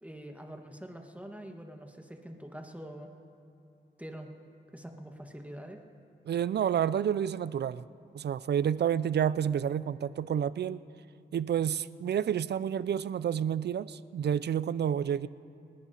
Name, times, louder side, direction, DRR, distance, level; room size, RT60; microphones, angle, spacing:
voice 1, 0.0-3.1 4.0-4.3 4.7-5.8, equal, 5° right, 3 dB, 1.6 m, -45 dB
voice 2, 6.3-7.9 8.1-10.8 11.3-15.3, right 9 dB, 60° right, 17 dB, 0.4 m, -29 dB
29.0 x 10.5 x 2.9 m, 2.7 s
cardioid pair, 45°, 19 cm